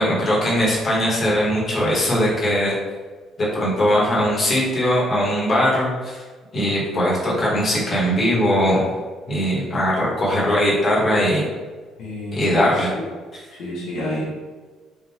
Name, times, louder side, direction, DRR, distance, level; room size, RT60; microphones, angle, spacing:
voice 1, 0.0-2.7 3.5-6.2 6.5-8.9 9.3-11.4 12.3-12.9, equal, 35° left, -6 dB, 1.3 m, -20 dB
voice 2, 12.0-13.1 13.6-14.3, left 1 dB, 70° left, -5 dB, 1.1 m, -30 dB
3.7 x 2.5 x 4.2 m, 1.4 s
cardioid pair, 140°, 0 cm